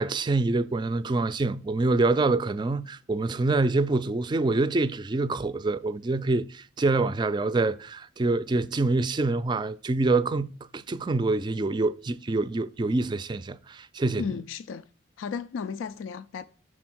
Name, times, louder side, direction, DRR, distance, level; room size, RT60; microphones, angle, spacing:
voice 1, 0.0-14.2, right 3 dB, 25° right, 0.3 m, -26 dB
voice 2, 14.2-14.9 15.2-16.4, left 6 dB, 90° left, 0.3 m, -34 dB
6.2 x 4.3 x 6.1 m
head